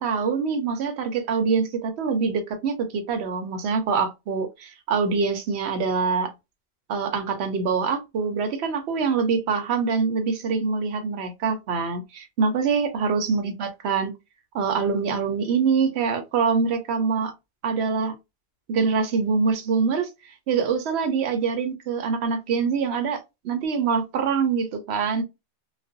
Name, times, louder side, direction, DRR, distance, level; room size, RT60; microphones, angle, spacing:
voice 1, 0.0-6.3 6.9-14.1 14.5-17.3 17.6-18.1 18.7-25.2, right 5 dB, 80° right, 0.9 m, -24 dB
2.4 x 2.1 x 2.5 m
omnidirectional pair, 1.1 m